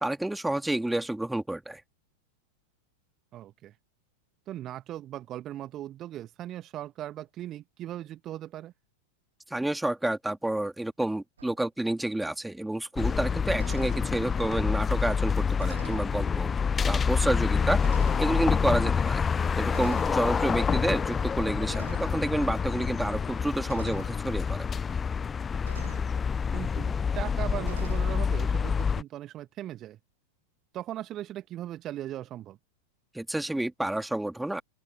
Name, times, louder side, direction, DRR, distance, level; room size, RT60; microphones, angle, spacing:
voice 1, 0.0-1.8 9.5-16.5 16.9-17.8 18.2-19.2 19.6-24.7 33.1-34.6, right 1 dB, 5° right, 2.9 m, -29 dB
voice 2, 3.3-3.8 4.5-8.7 17.6-17.8 26.5-30.0 30.7-32.6, right 13 dB, 30° right, 1.8 m, -38 dB
sound 1, 11.4-11.6 13.6-14.1 15.6-16.1 17.0-17.1 17.8-18.3 19.7-20.2 21.7-22.2 23.7-24.1 25.7-26.1 27.6-28.1, right 8 dB, 65° right, 1.6 m, -46 dB
sound 2, 13.0-29.0, left 6 dB, 20° left, 0.9 m, -27 dB
open air
figure-of-eight pair, 90°, 0 cm